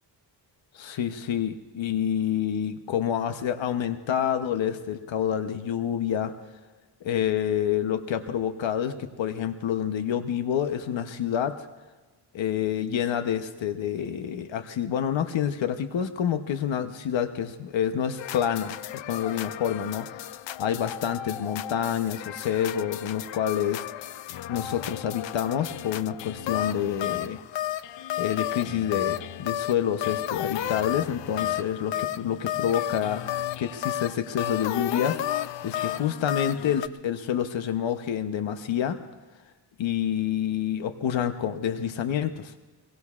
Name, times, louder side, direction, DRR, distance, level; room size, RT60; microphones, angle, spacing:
voice 1, 0.7-6.4 7.0-11.7 12.3-18.8 19.1-20.3 20.6-23.9 24.5-27.4 28.2-35.2 35.6-39.0 39.8-42.5, left 9 dB, 90° left, 8 dB, 0.9 m, -28 dB
sound 1, 18.2-36.9, left 12 dB, 75° left, 0.5 m, -33 dB
25.0 x 21.0 x 2.4 m, 1.3 s
wide cardioid pair, 125°, 44 cm